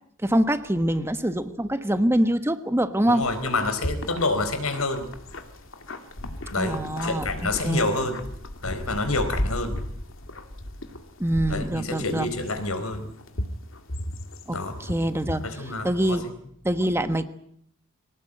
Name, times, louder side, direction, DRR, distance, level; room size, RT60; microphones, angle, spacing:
voice 1, 0.2-3.2 6.6-7.9 11.2-12.3 14.5-15.4 15.8-16.3 16.6-17.3, right 1 dB, 10° right, 9 dB, 1.2 m, -24 dB
voice 2, 3.1-5.1 6.5-8.3 8.6-9.8 11.5-13.1 14.5-14.7 15.4-16.2, left 2 dB, 80° left, 9 dB, 4.3 m, -28 dB
sound 1, 3.2-16.2, left 1 dB, 65° left, 2.5 m, -35 dB
24.0 x 18.5 x 9.0 m, 0.69 s
head